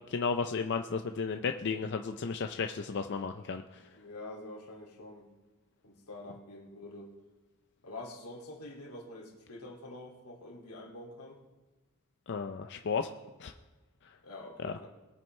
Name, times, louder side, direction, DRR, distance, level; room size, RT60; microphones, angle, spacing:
voice 1, 0.0-3.9 12.3-13.1 13.4-13.5 14.0-14.1 14.6-14.7, left 5 dB, 50° left, 6 dB, 0.5 m, -34 dB
voice 2, 3.9-5.3 5.8-7.1 7.8-11.4 14.2-14.9, left 2 dB, 90° left, -1 dB, 2.4 m, -46 dB
21.0 x 9.0 x 3.2 m, 1.2 s
head